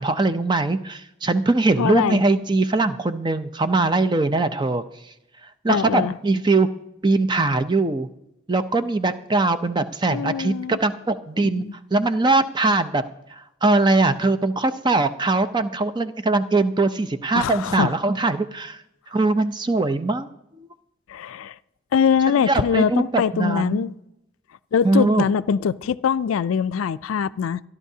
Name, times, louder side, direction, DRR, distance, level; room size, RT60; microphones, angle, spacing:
voice 1, 0.0-4.8 5.6-6.7 7.0-8.1 8.5-11.7 11.9-13.0 13.3-18.8 19.1-20.3 20.6-20.7 22.4-23.8 24.8-25.3, right 3 dB, 20° right, 10 dB, 0.5 m, -21 dB
voice 2, 1.8-2.2 5.7-6.2 10.1-10.8 11.4-11.7 17.3-18.0 21.1-21.6 21.9-23.9 24.7-27.6, left 7 dB, 80° left, 16 dB, 0.4 m, -23 dB
26.0 x 11.0 x 2.8 m, 0.86 s
head